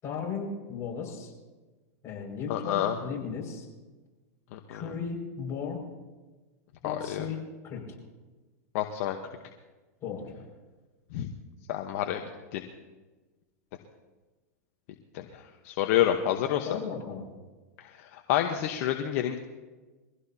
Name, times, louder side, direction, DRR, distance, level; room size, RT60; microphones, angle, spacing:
voice 1, 0.0-1.3 2.0-3.7 4.7-5.8 6.8-7.4 7.6-7.8 10.0-10.5 16.6-17.3, left 6 dB, 35° left, -2 dB, 6.1 m, -36 dB
voice 2, 2.5-2.9 4.5-4.8 6.8-7.3 8.7-9.2 11.1-11.3 11.7-12.2 12.5-12.6 15.1-16.7 17.8-19.4, left 11 dB, 60° left, 4 dB, 1.2 m, -28 dB
23.5 x 16.0 x 2.9 m, 1.2 s
hypercardioid pair, 115°, 9 cm